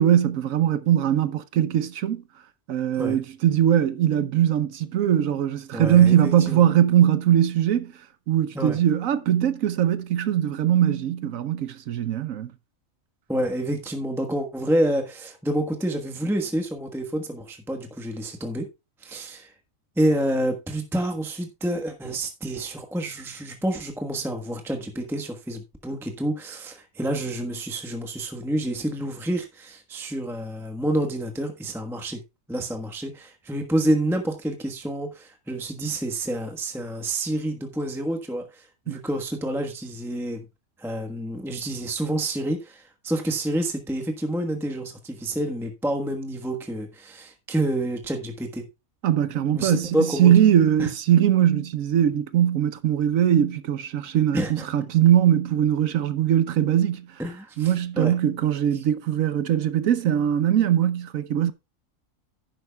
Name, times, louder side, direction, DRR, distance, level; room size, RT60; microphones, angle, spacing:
voice 1, 0.0-2.2 2.7-12.5 38.9-39.0 49.0-57.2 57.6-61.5, right 10 dB, 75° right, 1.1 m, -21 dB
voice 2, 5.7-6.6 8.5-8.8 13.3-18.7 19.0-19.5 20.0-32.2 32.5-40.5 40.8-48.7 49.5-50.3 50.8-50.9 54.3-54.7 57.2-58.1, right 1 dB, ahead, 1.1 m, -28 dB
11.0 x 10.5 x 2.3 m
omnidirectional pair, 1.4 m